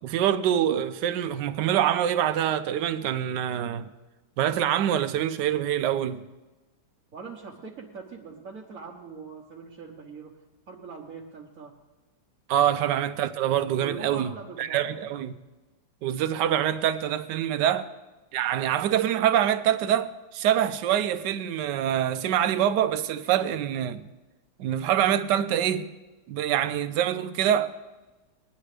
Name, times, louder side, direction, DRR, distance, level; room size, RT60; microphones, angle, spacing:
voice 1, 0.0-3.9 4.4-6.3 12.5-14.3 14.6-15.3 16.0-17.9 18.3-24.0 24.6-25.9 26.3-27.8, right 10 dB, 80° right, 1.3 m, -25 dB
voice 2, 7.1-10.3 10.7-11.7 13.8-15.1, right 5 dB, 55° right, 1.5 m, -42 dB
20.0 x 10.5 x 3.3 m
omnidirectional pair, 1.8 m